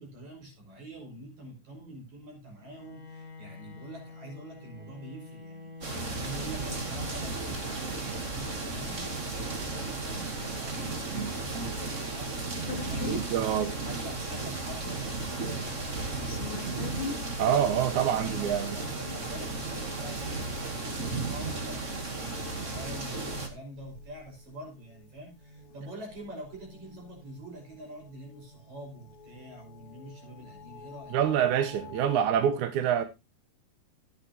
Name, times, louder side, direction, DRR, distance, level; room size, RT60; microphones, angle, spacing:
voice 1, 0.0-9.0 9.4-13.5 13.8-16.6 18.0-18.5 18.8-31.2, right 1 dB, 50° right, 6.7 m, -46 dB
Bowed string instrument, 2.6-7.9, left 3 dB, 10° right, 4.1 m, -47 dB
sound 1, 5.8-23.5, right 3 dB, 30° right, 1.3 m, -34 dB
sound 2, 12.7-32.3, left 5 dB, 50° left, 2.0 m, -47 dB
voice 2, 13.0-13.7 17.4-18.8 31.1-33.0, right 9 dB, 70° right, 1.9 m, -26 dB
14.5 x 9.8 x 2.8 m
omnidirectional pair, 4.3 m